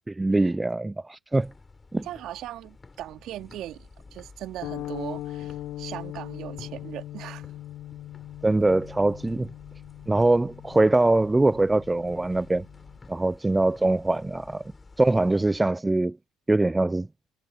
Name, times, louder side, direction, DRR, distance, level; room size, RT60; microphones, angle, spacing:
voice 1, 0.1-1.5 1.9-2.1 8.4-9.5 10.1-12.6 13.1-14.7 15.0-16.2 16.5-17.1, right 2 dB, 15° right, 0.6 m, -23 dB
sound 1, 1.3-15.6, left 3 dB, 20° left, 6.4 m, -51 dB
voice 2, 2.0-7.5, right 13 dB, 60° right, 2.7 m, -39 dB
sound 2, 4.6-13.0, left 14 dB, 60° left, 1.0 m, -40 dB
hypercardioid pair, 70°, 0 cm